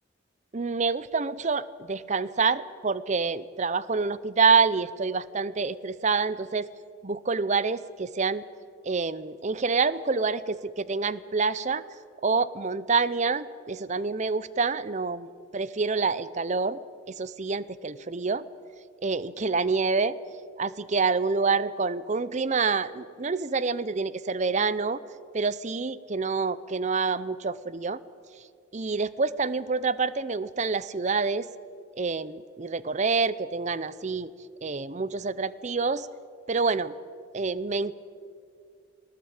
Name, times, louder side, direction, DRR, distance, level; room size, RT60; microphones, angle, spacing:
voice 1, 0.5-6.7 7.0-8.4 8.8-11.8 12.2-16.8 17.1-18.5 19.0-20.2 20.6-25.0 25.3-28.0 28.7-31.5 32.0-34.3 34.6-36.1 36.5-36.9 37.3-37.9, right 4 dB, 35° right, 17 dB, 0.6 m, -27 dB
20.0 x 18.5 x 8.8 m, 2.3 s
head